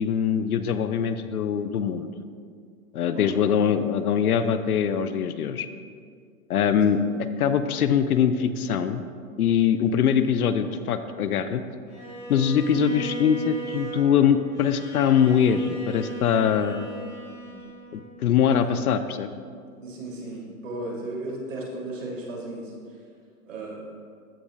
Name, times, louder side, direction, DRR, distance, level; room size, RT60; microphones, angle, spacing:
voice 1, 0.0-2.1 2.9-5.7 6.5-7.0 7.4-9.0 9.4-11.6 12.3-16.9 17.9-19.3, left 8 dB, 70° left, 11 dB, 0.5 m, -23 dB
voice 2, 3.1-3.5 6.9-7.0 12.5-12.8 17.4-17.6 18.5-18.6 19.8-22.7 23.5-23.8, right 2 dB, 55° right, -2 dB, 2.0 m, -35 dB
Bowed string instrument, 11.9-18.1, right 2 dB, 10° left, 1.3 m, -38 dB
14.5 x 5.1 x 2.3 m, 2.1 s
hypercardioid pair, 175°, 46 cm